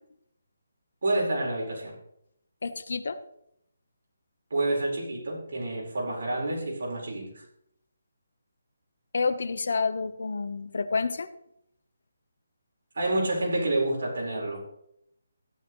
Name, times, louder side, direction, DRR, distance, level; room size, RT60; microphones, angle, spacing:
voice 1, 1.0-1.9 4.5-7.4 12.9-14.6, right 2 dB, 65° right, -2 dB, 4.6 m, -28 dB
voice 2, 2.6-3.2 9.1-11.3, left 4 dB, 65° left, 11 dB, 1.0 m, -29 dB
15.5 x 11.0 x 3.2 m, 0.76 s
hypercardioid pair, 170°, 0 cm